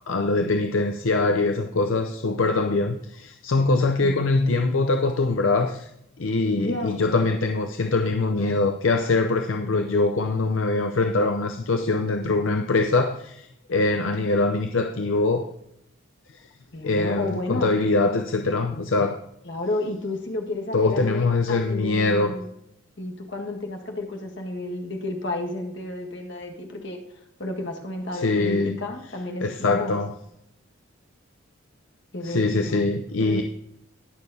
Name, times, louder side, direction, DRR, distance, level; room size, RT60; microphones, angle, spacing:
voice 1, 0.1-5.9 6.2-15.5 16.3-16.4 16.8-19.2 20.7-22.3 28.1-28.8 29.4-30.1 32.2-33.4, left 3 dB, 75° left, 5 dB, 0.6 m, -23 dB
voice 2, 6.5-7.0 16.7-17.7 19.4-22.5 23.0-27.0 27.4-30.0 32.1-32.9 33.2-33.4, left 2 dB, 60° left, 2 dB, 1.6 m, -31 dB
19.5 x 6.6 x 2.7 m, 0.78 s
head